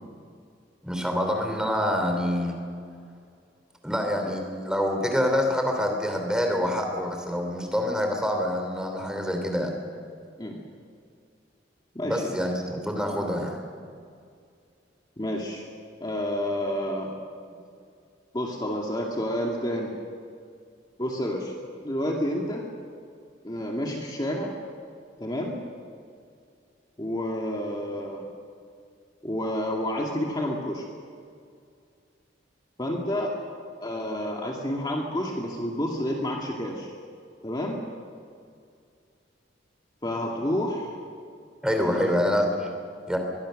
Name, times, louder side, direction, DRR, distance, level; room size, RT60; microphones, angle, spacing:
voice 1, 0.8-2.6 3.8-9.7 12.0-13.6 41.6-42.7 43.1-43.2, equal, 5° right, 3 dB, 3.3 m, -26 dB
voice 2, 11.9-12.4 15.2-15.6 16.0-17.2 18.3-20.0 21.0-21.5 21.8-22.7 23.4-24.5 25.2-25.6 27.0-28.2 29.2-30.8 32.8-33.3 33.8-36.9 37.4-37.8 40.0-41.0 41.8-42.2, equal, 20° left, -1 dB, 2.2 m, -29 dB
23.5 x 22.5 x 6.5 m, 2.3 s
head